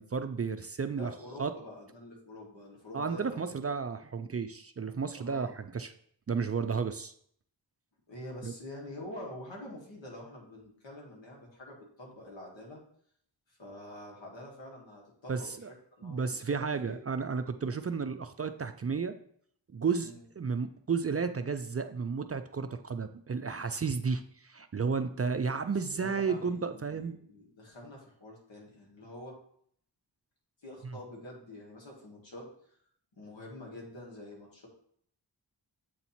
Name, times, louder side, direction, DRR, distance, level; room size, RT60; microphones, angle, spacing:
voice 1, 0.0-1.1 1.4-1.5 2.9-5.9 6.3-7.1 8.4-8.5 15.3-15.7 16.0-19.1 19.7-27.2, right 5 dB, 35° right, 9 dB, 0.4 m, -32 dB
voice 2, 1.0-3.7 5.1-5.6 8.1-12.8 13.5-15.5 16.0-16.6 16.9-17.0 20.0-20.2 25.9-29.4 30.6-32.8 33.1-34.7, left 1 dB, 80° left, -2 dB, 1.9 m, -46 dB
7.9 x 2.9 x 4.2 m, 0.62 s
cardioid pair, 50°, 44 cm